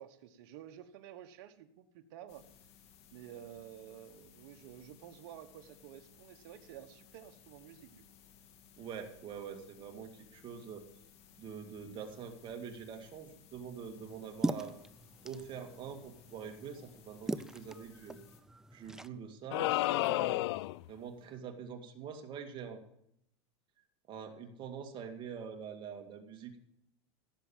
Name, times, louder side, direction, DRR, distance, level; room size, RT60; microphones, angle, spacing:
voice 1, 0.0-2.4 3.1-8.0, right 10 dB, 65° right, 7 dB, 1.3 m, -51 dB
sound 1, 2.3-18.4, left 8 dB, 45° left, 2.7 m, -61 dB
voice 2, 8.8-10.9 11.4-14.8 15.2-18.2 18.7-20.4 20.9-22.8 24.1-26.6, right 7 dB, 35° right, 5 dB, 2.3 m, -45 dB
sound 2, 14.0-19.1, right 1 dB, 5° right, 0.5 m, -41 dB
sound 3, 19.5-20.9, left 18 dB, 70° left, 0.4 m, -31 dB
16.5 x 7.4 x 7.3 m, 0.74 s
supercardioid pair, 125°, 14 cm